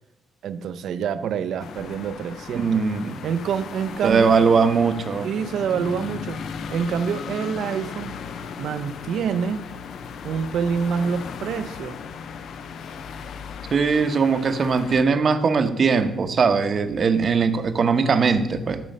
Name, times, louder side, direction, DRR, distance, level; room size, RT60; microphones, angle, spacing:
voice 1, 0.4-2.8 3.2-4.4 5.2-6.4 6.7-8.1 8.6-9.7 10.2-12.0, right 7 dB, 70° right, 11 dB, 0.7 m, -26 dB
sound 1, 1.6-15.1, left 6 dB, 65° left, 0.6 m, -36 dB
voice 2, 2.5-3.2 4.0-5.3 13.7-18.8, right 5 dB, 40° right, 9 dB, 0.9 m, -20 dB
12.5 x 5.4 x 5.3 m, 0.91 s
cardioid pair, 130°, 0 cm